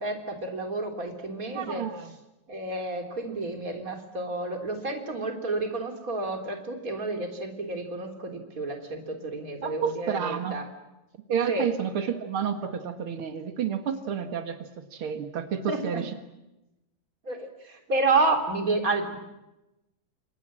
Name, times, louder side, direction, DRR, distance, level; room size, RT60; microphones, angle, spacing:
voice 1, 0.0-1.9 2.5-10.6 11.5-11.6 15.7-16.0 17.2-19.2, right 3 dB, 20° right, 5 dB, 3.3 m, -30 dB
voice 2, 1.5-2.1 9.6-10.6 11.3-16.1, right 7 dB, 85° right, 7 dB, 1.1 m, -30 dB
29.5 x 26.5 x 7.6 m, 0.96 s
omnidirectional pair, 5.2 m